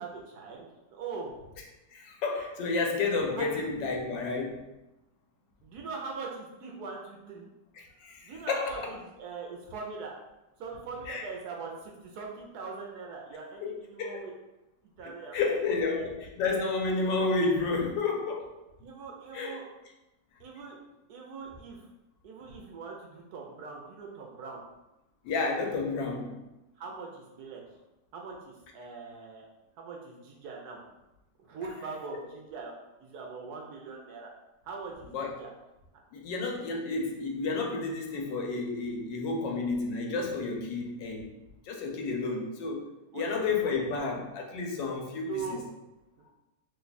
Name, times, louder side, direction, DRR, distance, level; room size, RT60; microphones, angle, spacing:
voice 1, 0.0-1.3 3.3-3.5 5.6-7.5 8.2-10.1 10.6-14.3 15.0-16.0 18.8-19.6 20.4-20.8 21.1-21.9 22.2-24.6 26.8-27.8 28.1-29.5 29.8-30.8 31.4-32.7 33.0-34.3 34.6-35.5 43.1-43.7 45.3-45.6, right 4 dB, 70° right, -1 dB, 1.0 m, -41 dB
voice 2, 1.9-4.6 8.0-8.9 11.1-11.2 13.6-14.1 15.3-18.5 19.3-19.6 25.2-26.4 35.1-35.3 36.1-41.3 41.7-42.8 43.1-45.6, left 3 dB, 85° left, 1 dB, 1.3 m, -31 dB
3.1 x 2.2 x 3.9 m, 0.97 s
omnidirectional pair, 1.9 m